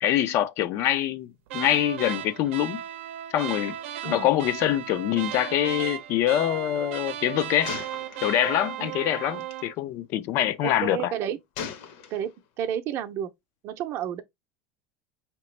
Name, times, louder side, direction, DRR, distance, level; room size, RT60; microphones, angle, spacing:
voice 1, 0.0-2.8 3.3-3.8 4.0-7.7 8.2-11.1, left 12 dB, 45° left, 0.4 m, -25 dB
sound 1, 1.5-9.7, right 12 dB, 85° right, 0.6 m, -36 dB
Gunshot gunfire, 5.3-5.4 5.7-5.8 7.6-8.6 9.4-9.6 11.6-12.5, left 7 dB, 60° left, 0.9 m, -38 dB
voice 2, 10.6-11.4 12.1-12.3 12.6-13.3 13.6-14.2, right 10 dB, 40° right, 0.6 m, -30 dB
5.0 x 2.9 x 3.1 m
supercardioid pair, 160°, 7 cm